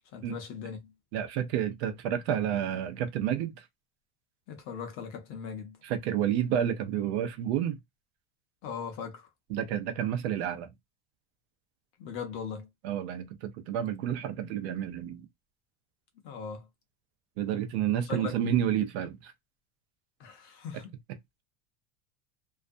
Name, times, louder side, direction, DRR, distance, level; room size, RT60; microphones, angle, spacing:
voice 1, 0.1-0.9 4.5-5.8 8.6-9.3 12.0-12.7 16.2-16.7 17.9-18.3 20.2-20.9, left 6 dB, 35° left, 0.6 m, -39 dB
voice 2, 1.1-3.7 5.8-7.8 9.5-10.7 12.8-15.3 17.4-19.3, right 10 dB, 65° right, 0.6 m, -30 dB
2.4 x 2.2 x 2.5 m
supercardioid pair, 165°, 35 cm